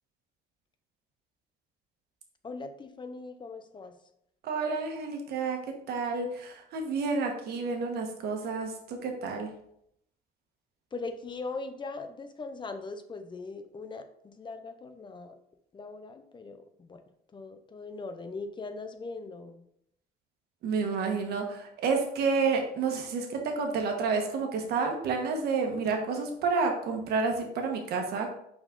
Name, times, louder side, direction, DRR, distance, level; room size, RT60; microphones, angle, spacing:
voice 1, 2.4-3.9 10.9-15.3 15.7-17.0 17.3-19.6, left 3 dB, 25° left, 8 dB, 0.8 m, -40 dB
voice 2, 4.4-5.6 5.9-9.5 20.6-28.3, right 4 dB, 70° right, 3 dB, 1.4 m, -30 dB
5.8 x 4.3 x 3.9 m, 0.73 s
cardioid pair, 110°, 17 cm